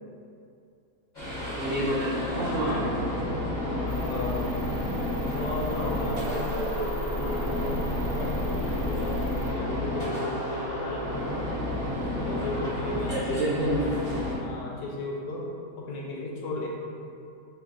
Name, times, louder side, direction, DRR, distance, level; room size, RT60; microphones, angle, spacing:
sound 1, 1.1-14.4, left 1 dB, 30° left, 1.1 m, -31 dB
voice 1, 1.6-3.1 5.3-5.4 6.2-6.6 13.1-13.8, right 1 dB, 75° right, -9 dB, 0.6 m, -29 dB
voice 2, 3.7-4.5 5.3-11.3 12.1-15.5 15.8-16.7, left 2 dB, 75° left, -2 dB, 1.2 m, -35 dB
sound 2, 3.9-9.5, equal, 90° right, 1.3 m, -37 dB
sound 3, 4.6-11.5, equal, 15° right, 0.6 m, -47 dB
3.0 x 2.9 x 3.6 m, 2.4 s
omnidirectional pair, 1.9 m